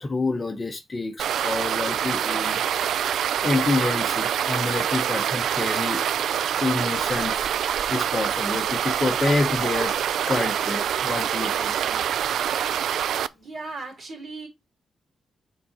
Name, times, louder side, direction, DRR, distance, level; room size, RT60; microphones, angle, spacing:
voice 1, 0.0-2.6 3.4-6.0 6.6-7.5 7.9-11.7, left 3 dB, 25° left, 0.8 m, -27 dB
sound 1, 1.2-13.3, right 9 dB, 90° right, 0.3 m, -25 dB
voice 2, 11.7-12.1 13.3-14.5, right 3 dB, 45° right, 3.3 m, -40 dB
7.4 x 3.8 x 4.1 m
wide cardioid pair, 135°, 0 cm